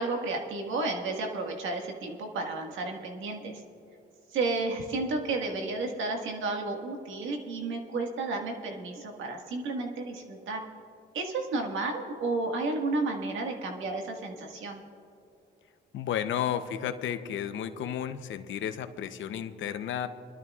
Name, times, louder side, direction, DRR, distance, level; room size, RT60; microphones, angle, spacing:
voice 1, 0.0-3.6 4.3-10.6 11.1-14.8, right 3 dB, 80° right, 2 dB, 1.7 m, -32 dB
voice 2, 15.9-20.1, left 9 dB, 75° left, 9 dB, 0.8 m, -32 dB
24.0 x 12.5 x 2.4 m, 2.7 s
cardioid pair, 90°, 20 cm